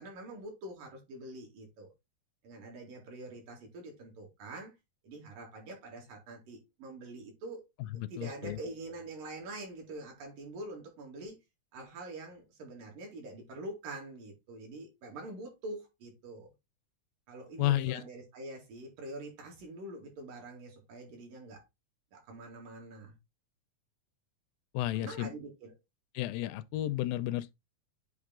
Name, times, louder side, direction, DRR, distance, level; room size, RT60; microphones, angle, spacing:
voice 1, 0.0-1.9 2.4-4.7 5.0-7.7 8.1-11.4 11.7-16.5 17.3-21.6 22.1-23.2 24.9-25.8, right 2 dB, 70° right, 3.8 m, -45 dB
voice 2, 8.0-8.6 17.6-18.0 24.7-25.3 26.2-27.5, left 14 dB, 85° left, 2.2 m, -32 dB
8.2 x 3.2 x 3.7 m
omnidirectional pair, 4.0 m